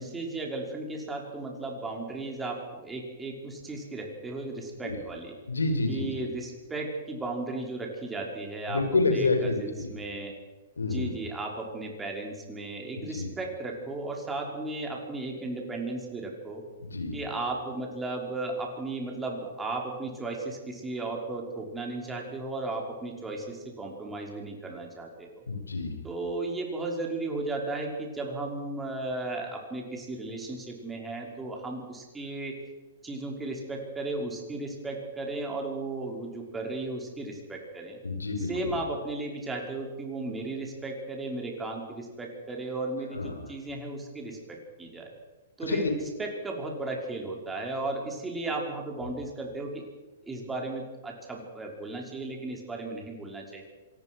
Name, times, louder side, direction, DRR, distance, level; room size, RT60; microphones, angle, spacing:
voice 1, 0.0-5.4 5.9-10.4 10.8-16.7 17.1-25.4 26.0-32.6 33.0-38.0 38.4-45.1 45.6-49.8 50.2-53.6, right 2 dB, 10° right, 1 dB, 5.4 m, -35 dB
voice 2, 5.5-6.1 8.7-9.6 10.8-11.1 13.0-13.3 16.8-17.2 25.5-25.9 38.0-38.7 43.1-43.3 45.7-45.9, left 3 dB, 90° left, 6 dB, 5.1 m, -28 dB
26.0 x 19.0 x 6.4 m, 1.2 s
hypercardioid pair, 120°, 0 cm